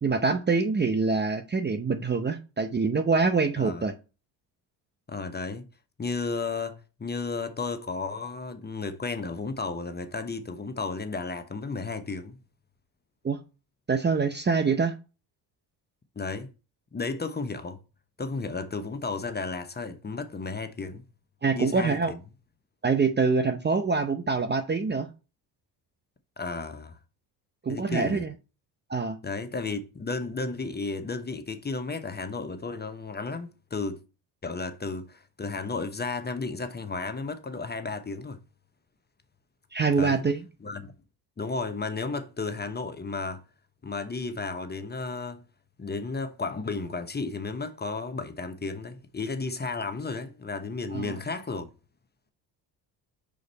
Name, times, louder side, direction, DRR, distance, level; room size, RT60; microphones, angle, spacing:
voice 1, 0.0-3.9 13.2-13.4 13.9-15.0 21.4-22.1 22.8-25.1 27.6-28.3 28.9-29.2 39.7-40.4 50.9-51.2, right 4 dB, 20° right, 0.7 m, -25 dB
voice 2, 5.1-5.6 6.0-12.4 16.2-16.5 16.9-17.8 18.2-21.0 21.5-22.2 26.4-27.0 27.7-28.2 29.2-34.0 34.4-38.4 40.0-40.2 40.6-40.9 41.4-43.4 43.8-45.4 45.8-51.7, left 4 dB, 20° left, 0.9 m, -33 dB
5.1 x 3.9 x 5.5 m
hypercardioid pair, 65°, 49 cm